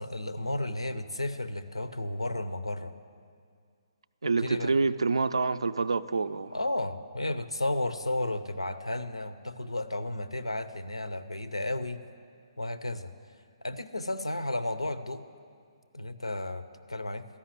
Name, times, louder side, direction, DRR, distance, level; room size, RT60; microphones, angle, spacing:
voice 1, 0.0-2.9 4.2-4.8 6.5-12.0 12.6-13.1 13.6-15.2 15.9-17.2, left 1 dB, 85° left, 12 dB, 0.6 m, -33 dB
voice 2, 4.2-6.5, right 4 dB, 70° right, 14 dB, 0.3 m, -27 dB
13.5 x 5.7 x 8.1 m, 2.2 s
figure-of-eight pair, 130°, 3 cm